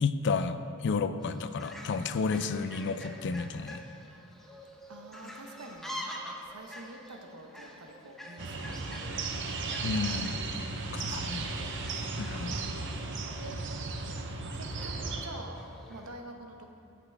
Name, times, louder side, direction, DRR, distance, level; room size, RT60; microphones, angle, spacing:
voice 1, 0.0-3.8 9.8-10.4 10.9-11.5 12.2-12.6, left 4 dB, 55° left, 11 dB, 0.4 m, -31 dB
Fowl, 1.2-16.1, equal, ahead, 0.7 m, -47 dB
voice 2, 4.9-6.1 6.5-9.8 11.0-12.9 13.4-13.6 14.5-15.6 15.9-16.7, right 2 dB, 80° right, 3 dB, 1.0 m, -48 dB
sound 1, 8.4-15.3, right 3 dB, 60° right, 0.7 m, -35 dB
14.5 x 6.0 x 3.4 m, 2.7 s
head